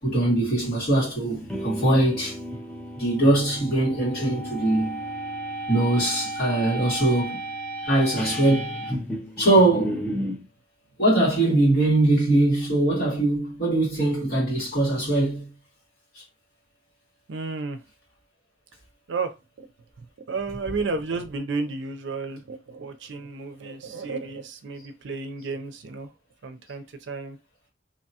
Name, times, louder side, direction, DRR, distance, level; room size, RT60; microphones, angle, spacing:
voice 1, 0.0-2.4 3.0-5.0 5.7-7.4 7.8-8.8 9.4-10.0 11.0-15.5 16.1-16.2, right 1 dB, 55° left, 1.7 m, -22 dB
sound 1, 1.3-10.5, right 1 dB, 5° left, 0.5 m, -33 dB
voice 2, 17.3-17.8 19.1-19.7 20.2-26.1 26.4-27.4, right 4 dB, 75° right, 0.5 m, -32 dB
2.8 x 2.2 x 2.7 m
head